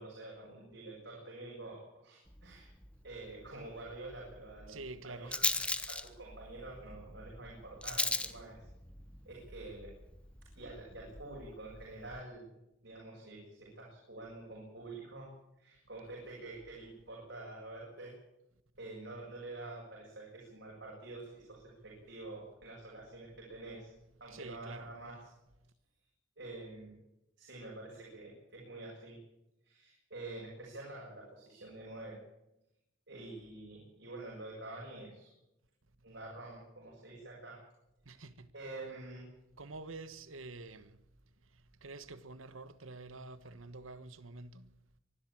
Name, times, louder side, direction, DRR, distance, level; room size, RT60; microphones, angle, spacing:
voice 1, 0.0-1.8 2.0-2.7 3.0-4.8 5.0-8.7 9.3-9.9 10.5-12.5 12.8-15.3 15.6-18.1 18.8-23.9 24.2-25.2 26.4-26.9 27.4-29.2 29.6-32.2 33.1-35.3 36.0-37.6 38.1-38.3 38.5-39.3, right 2 dB, 65° right, 7.2 m, -47 dB
Rattle, 2.3-12.2, left 2 dB, 5° left, 1.0 m, -40 dB
voice 2, 4.7-5.7 24.3-24.9 38.0-38.5 39.6-41.0 41.8-44.7, right 3 dB, 85° right, 1.4 m, -48 dB
24.0 x 12.5 x 8.8 m
head